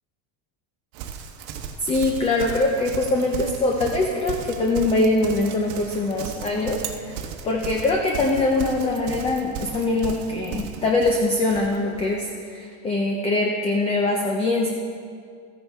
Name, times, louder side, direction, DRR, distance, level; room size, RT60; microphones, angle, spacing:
Livestock farm animals working animals, 0.9-12.1, right 7 dB, 80° right, 1.1 m, -35 dB
voice 1, 1.8-14.7, left 2 dB, 15° left, 1 dB, 0.5 m, -23 dB
14.0 x 9.5 x 3.5 m, 2.2 s
cardioid pair, 165°, 42 cm